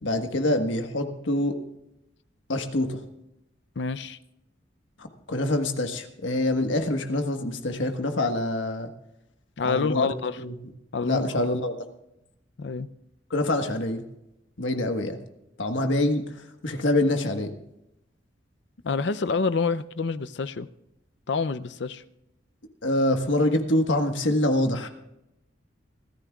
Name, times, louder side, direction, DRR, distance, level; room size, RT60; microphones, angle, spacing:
voice 1, 0.0-1.6 2.5-3.0 5.0-8.9 9.6-10.1 10.4-10.6 11.0-11.7 13.3-14.1 14.6-15.2 15.6-17.5 22.8-24.9, left 1 dB, 90° left, 1.4 m, -25 dB
voice 2, 3.8-4.2 9.6-10.4 10.9-11.6 12.6-12.9 18.8-20.7 21.3-22.0, left 4 dB, 65° left, 0.6 m, -27 dB
25.5 x 13.5 x 2.4 m
head